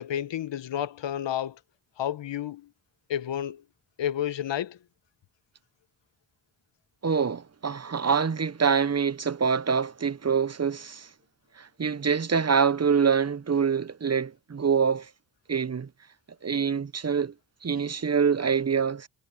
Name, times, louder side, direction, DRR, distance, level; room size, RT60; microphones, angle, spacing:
voice 1, 0.0-1.6 2.0-2.7 3.1-3.6 4.0-4.8, left 10 dB, 60° left, 1.6 m, -31 dB
voice 2, 7.0-11.1 11.6-15.1 15.5-15.9 16.4-17.3 17.6-19.1, right 6 dB, 30° right, 1.3 m, -25 dB
hypercardioid pair, 40°, 49 cm